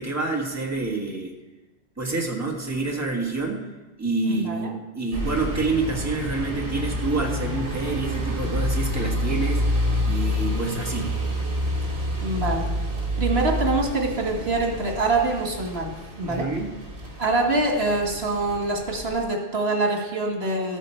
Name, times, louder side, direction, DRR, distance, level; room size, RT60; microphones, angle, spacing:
voice 1, 0.0-1.3 2.0-3.7 4.0-11.1 16.2-16.7, right 3 dB, 15° right, -1 dB, 1.5 m, -28 dB
voice 2, 4.3-4.7 12.2-12.7 13.2-16.5 17.2-20.8, right 2 dB, 80° right, 1 dB, 1.9 m, -25 dB
sound 1, 5.1-19.3, left 1 dB, 60° right, 2.2 m, -28 dB
13.0 x 9.1 x 4.5 m, 1.1 s
omnidirectional pair, 1.0 m